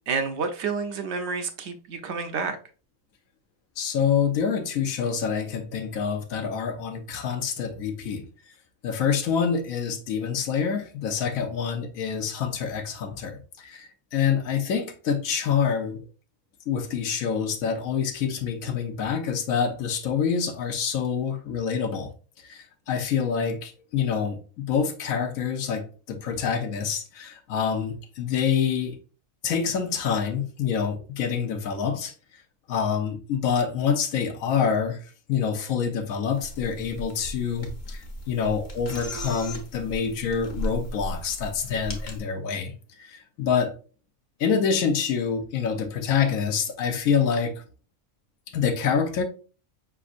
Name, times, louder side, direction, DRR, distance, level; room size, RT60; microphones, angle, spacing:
voice 1, 0.1-2.6, right 5 dB, 65° right, 0.8 m, -29 dB
voice 2, 3.8-8.2 8.8-16.0 16.7-22.1 22.5-29.0 29.4-32.1 32.7-35.0 35.3-42.7 43.1-43.7 44.4-47.5 48.5-49.2, left 7 dB, 90° left, 1.2 m, -26 dB
sound 1, 36.3-42.2, equal, 50° left, 1.1 m, -36 dB
5.1 x 3.5 x 2.4 m
omnidirectional pair, 1.4 m